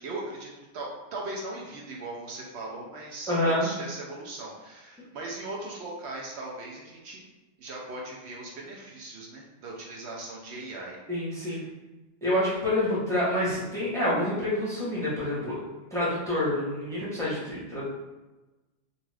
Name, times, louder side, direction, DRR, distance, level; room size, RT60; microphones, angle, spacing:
voice 1, 0.0-7.2 7.6-11.0 11.4-11.7, right 2 dB, 70° right, -2 dB, 0.8 m, -39 dB
voice 2, 3.3-3.7 11.1-11.6 12.2-15.6 15.9-17.8, left 1 dB, 5° left, -9 dB, 0.8 m, -27 dB
2.6 x 2.4 x 3.2 m, 1.1 s
omnidirectional pair, 1.2 m